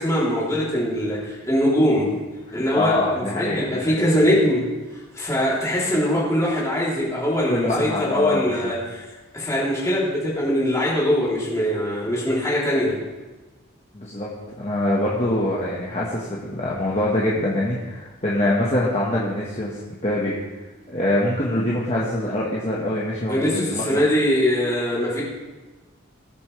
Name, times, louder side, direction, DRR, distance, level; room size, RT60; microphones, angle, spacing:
voice 1, 0.0-2.1 2.5-4.6 5.1-13.0 23.3-25.2, equal, 15° left, -7 dB, 3.2 m, -22 dB
voice 2, 2.5-4.2 7.5-8.7 13.9-20.3 20.9-24.0, left 1 dB, 30° left, -5 dB, 1.4 m, -24 dB
18.5 x 7.2 x 3.3 m, 1.2 s
head